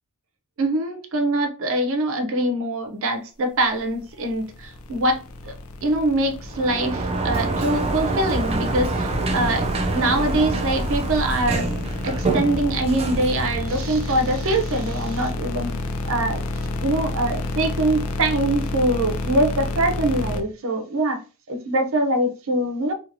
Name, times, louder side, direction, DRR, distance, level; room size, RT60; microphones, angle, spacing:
voice 1, 0.6-5.5 5.8-11.7 12.0-15.8 16.0-16.4 16.8-22.9, right 1 dB, 65° right, 0.6 m, -23 dB
sound 1, 3.9-20.4, left 2 dB, 80° left, 0.4 m, -30 dB
Sliding door, 6.5-14.3, right 2 dB, 25° right, 0.3 m, -26 dB
2.6 x 2.4 x 2.7 m
head